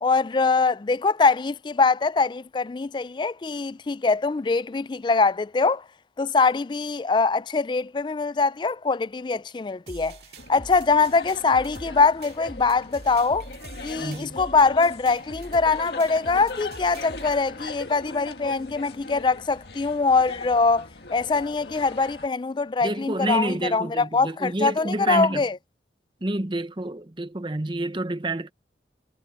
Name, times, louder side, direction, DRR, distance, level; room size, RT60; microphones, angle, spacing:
voice 1, 0.0-5.8 6.2-10.2 10.5-13.4 13.8-25.6, left 4 dB, 25° left, 0.3 m, -23 dB
sound 1, 9.9-17.4, right 2 dB, 65° right, 2.3 m, -44 dB
sound 2, 10.4-22.3, left 3 dB, 65° left, 2.0 m, -39 dB
voice 2, 14.0-14.4 22.8-25.5 26.2-28.5, right 2 dB, 25° right, 0.8 m, -28 dB
head